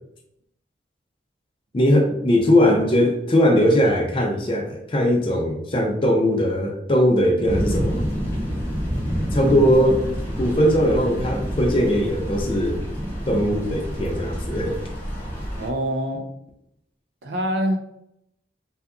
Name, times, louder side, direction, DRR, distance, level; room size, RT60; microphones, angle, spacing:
voice 1, 1.7-8.0 9.3-10.0 10.4-12.8 13.3-14.8, equal, 30° left, 2 dB, 0.4 m, -20 dB
sound 1, 7.5-15.7, equal, 10° left, 0.8 m, -28 dB
voice 2, 15.6-16.3 17.2-17.8, right 1 dB, 85° right, 4 dB, 0.5 m, -25 dB
2.7 x 2.3 x 2.4 m, 0.76 s
head